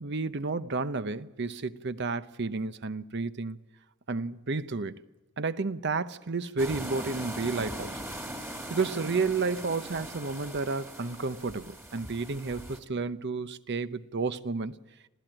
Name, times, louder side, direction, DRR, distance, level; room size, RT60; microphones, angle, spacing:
voice 1, 0.0-3.6 4.1-5.0 5.4-8.0 8.7-14.7, right 4 dB, 55° right, 0.8 m, -31 dB
sound 1, 6.6-12.8, right 1 dB, 10° right, 2.1 m, -40 dB
26.0 x 16.0 x 9.0 m
head